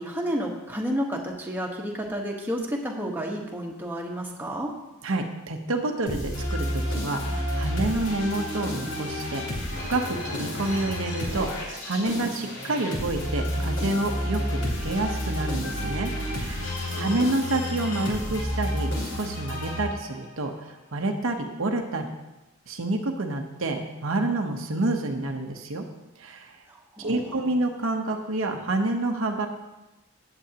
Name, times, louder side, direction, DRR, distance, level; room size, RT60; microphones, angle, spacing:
voice 1, 0.0-4.7 17.0-17.3 26.7-27.5, equal, 10° right, -1 dB, 1.2 m, -31 dB
voice 2, 5.0-9.4 9.7-22.1 22.7-25.9 26.2-26.6 27.0-29.5, right 2 dB, 65° right, 3 dB, 1.0 m, -28 dB
sound 1, 6.1-20.3, left 1 dB, 75° left, 3.4 m, -30 dB
16.5 x 7.9 x 2.9 m, 1.0 s
head